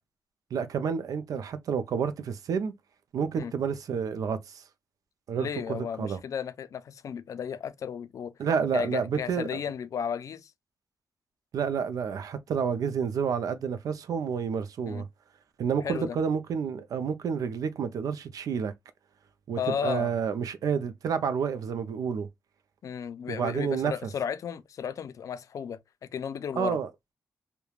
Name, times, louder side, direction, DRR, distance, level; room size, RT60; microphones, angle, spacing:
voice 1, 0.5-2.7 3.1-4.6 5.3-6.2 8.4-9.6 11.5-15.1 15.6-18.7 19.5-22.3 23.3-23.9 26.6-26.9, right 6 dB, 75° right, 0.5 m, -29 dB
voice 2, 5.4-8.3 8.7-10.5 14.9-15.0 15.8-16.2 19.6-20.1 22.8-26.8, left 7 dB, 65° left, 0.4 m, -34 dB
3.1 x 2.2 x 2.3 m
wide cardioid pair, 115°, 6 cm